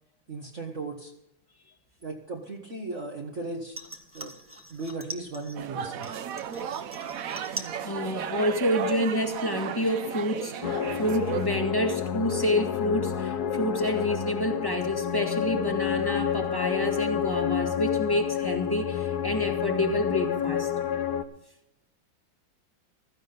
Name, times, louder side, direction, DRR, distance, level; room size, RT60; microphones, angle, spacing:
voice 1, 0.3-1.1 2.0-3.8 4.1-4.3 4.7-6.2, right 3 dB, 40° right, -1 dB, 1.7 m, -36 dB
sound 1, 3.7-5.6 6.0-7.8 8.1-8.7 9.0-9.1, right 1 dB, 5° right, 1.2 m, -42 dB
sound 2, 5.6-11.5, right 8 dB, 60° right, 1.0 m, -34 dB
voice 2, 7.4-20.7, left 1 dB, 10° left, 3 dB, 1.8 m, -28 dB
sound 3, 10.6-21.2, left 8 dB, 60° left, 1.4 m, -29 dB
16.5 x 14.5 x 4.0 m, 0.80 s
omnidirectional pair, 2.1 m